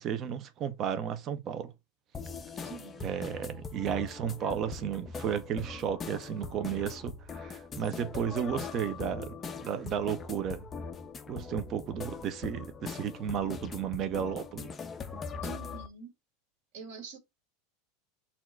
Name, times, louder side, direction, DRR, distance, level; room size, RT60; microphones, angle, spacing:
voice 1, 0.0-1.7 3.0-10.7 11.3-14.7, right 8 dB, 30° right, 0.6 m, -33 dB
sound 1, 2.1-15.9, left 5 dB, 15° left, 0.4 m, -41 dB
voice 2, 2.6-3.1 15.4-16.1 16.7-17.2, right 5 dB, 60° right, 2.0 m, -45 dB
4.2 x 2.4 x 4.4 m
supercardioid pair, 160°, 0 cm